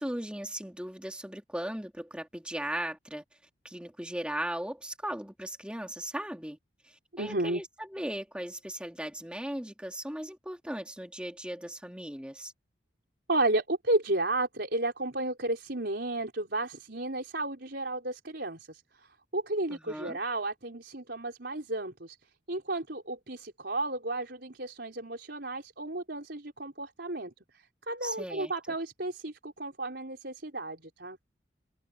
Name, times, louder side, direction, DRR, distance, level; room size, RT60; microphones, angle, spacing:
voice 1, 0.0-3.2 3.6-6.6 6.8-12.5 19.7-20.2 28.0-28.5, right 1 dB, 5° right, 2.4 m, -37 dB
voice 2, 7.2-7.6 13.3-18.8 19.3-22.2 22.5-31.2, right 2 dB, 65° right, 5.5 m, -33 dB
head